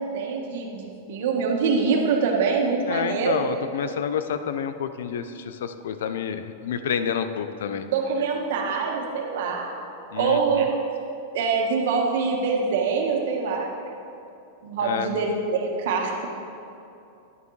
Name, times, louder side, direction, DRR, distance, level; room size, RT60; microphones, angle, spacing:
voice 1, 0.0-3.3 7.8-9.7 10.2-10.7 11.3-13.7 14.6-16.3, right 5 dB, 65° right, 0 dB, 1.5 m, -24 dB
voice 2, 2.9-7.9 10.1-10.6 14.8-15.1, left 7 dB, 80° left, 10 dB, 0.5 m, -29 dB
11.0 x 9.4 x 3.3 m, 2.7 s
supercardioid pair, 160°, 0 cm